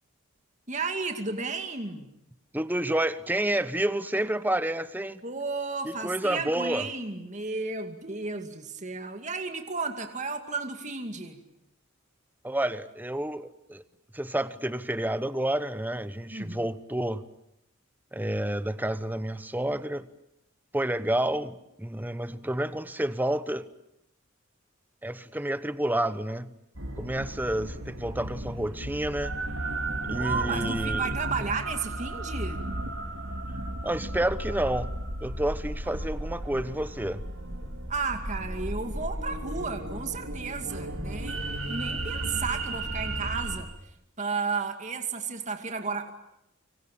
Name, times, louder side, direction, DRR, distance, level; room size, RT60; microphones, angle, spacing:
voice 1, 0.7-2.1 5.2-11.4 16.3-16.6 30.2-32.6 37.9-43.7 44.2-46.1, right 4 dB, 35° right, 2.3 m, -33 dB
voice 2, 2.5-5.2 5.8-6.9 12.4-13.8 14.1-17.2 18.1-20.1 20.7-23.7 25.0-26.5 27.0-29.3 30.1-31.1 33.5-34.9 35.2-37.2, right 1 dB, 10° right, 1.0 m, -29 dB
sound 1, 26.8-43.6, right 2 dB, 85° right, 5.0 m, -34 dB
26.0 x 25.0 x 9.0 m
head